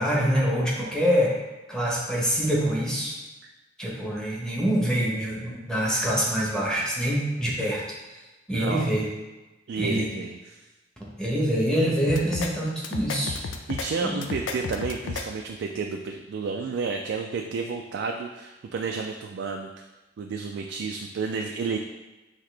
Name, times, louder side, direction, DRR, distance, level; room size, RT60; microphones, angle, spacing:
voice 1, 0.0-1.3 1.7-3.1 3.8-7.8 8.5-9.0 9.8-10.1 11.2-13.4 14.0-14.3, equal, 5° left, -5 dB, 1.0 m, -25 dB
voice 2, 8.5-8.9 9.7-10.7 13.7-19.7 20.2-21.8, right 4 dB, 65° right, 3 dB, 0.3 m, -31 dB
sound 1, 12.1-12.5 12.8-13.9 14.2-15.2, left 4 dB, 85° left, 0.4 m, -32 dB
5.7 x 2.9 x 3.2 m, 1.1 s
head